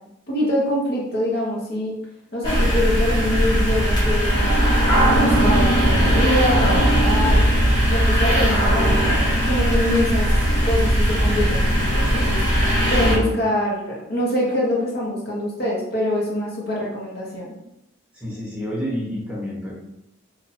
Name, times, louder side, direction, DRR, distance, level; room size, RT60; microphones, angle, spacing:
voice 1, 0.3-1.9 2.3-4.5 4.9-7.4 7.9-9.2 9.4-10.3 10.6-12.4 12.9-17.5, left 1 dB, 50° left, -4 dB, 1.2 m, -24 dB
sound 1, 2.4-13.2, equal, 20° left, 1.2 m, -18 dB
voice 2, 13.0-13.4 18.1-19.7, equal, 5° right, -7 dB, 1.1 m, -29 dB
2.8 x 2.6 x 4.3 m, 0.84 s
head